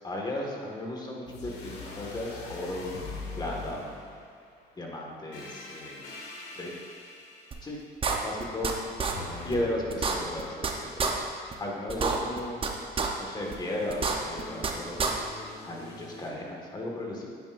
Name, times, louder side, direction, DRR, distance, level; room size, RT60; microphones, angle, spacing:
voice 1, 0.0-3.0 3.4-3.9 4.8-6.1 6.6-6.7 7.6-7.8 8.2-8.7 9.4-11.2 11.6-12.6 13.2-15.0 15.7-17.3, left 1 dB, 25° left, -1 dB, 1.8 m, -35 dB
sound 1, 1.3-4.5 5.3-7.8 9.1-11.2 13.4-16.3, left 3 dB, 80° left, 1.7 m, -43 dB
sound 2, 7.5-7.6 8.0-8.7 9.0-9.1 9.5-9.6 9.9-10.7 11.0-11.1 11.5-11.6 11.9-12.7 13.0-13.1 13.5-13.6 13.9-14.7 15.0-15.1, right 5 dB, 30° right, 0.9 m, -27 dB
9.9 x 9.8 x 2.6 m, 2.3 s
cardioid pair, 110°, 17 cm